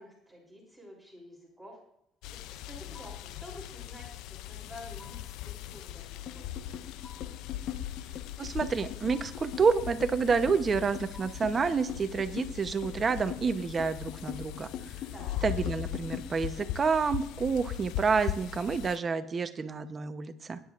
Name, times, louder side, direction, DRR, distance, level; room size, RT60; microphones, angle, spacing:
voice 1, 0.0-1.8 2.3-6.6 15.1-15.3, left 1 dB, 5° right, -3 dB, 3.4 m, -50 dB
sound 1, 2.2-19.0, left 13 dB, 75° left, 0.4 m, -40 dB
sound 2, 2.9-3.4 5.0-5.5 7.0-7.5 9.1-9.6 11.1-11.6, left 3 dB, 30° left, 1.7 m, -54 dB
sound 3, 6.3-16.8, left 9 dB, 55° left, 1.2 m, -42 dB
voice 2, 8.4-14.7 15.4-20.6, right 5 dB, 25° right, 10 dB, 0.8 m, -29 dB
20.5 x 10.5 x 2.5 m, 0.74 s
cardioid pair, 145°, 0 cm